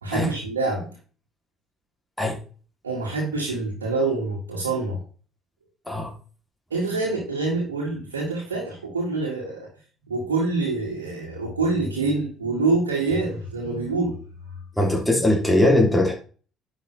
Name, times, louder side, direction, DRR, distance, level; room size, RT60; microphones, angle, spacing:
voice 1, 0.0-0.9 2.8-5.0 6.7-9.7 10.1-14.2, right 3 dB, 85° right, -4 dB, 2.1 m, -26 dB
voice 2, 14.8-16.1, left 1 dB, 5° left, -1 dB, 3.3 m, -20 dB
11.0 x 5.6 x 3.4 m, 0.40 s
figure-of-eight pair, 55°, 0 cm